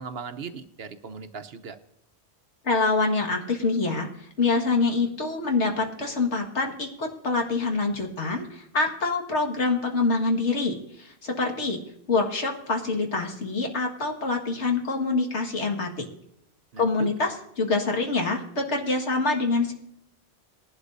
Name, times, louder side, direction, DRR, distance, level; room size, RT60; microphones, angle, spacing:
voice 1, 0.0-1.8 16.7-17.1, right 5 dB, 65° right, 9 dB, 1.0 m, -38 dB
voice 2, 2.6-11.8 12.1-16.1 16.8-19.7, left 3 dB, 80° left, 2 dB, 2.1 m, -26 dB
19.5 x 11.5 x 2.7 m, 0.77 s
omnidirectional pair, 1.2 m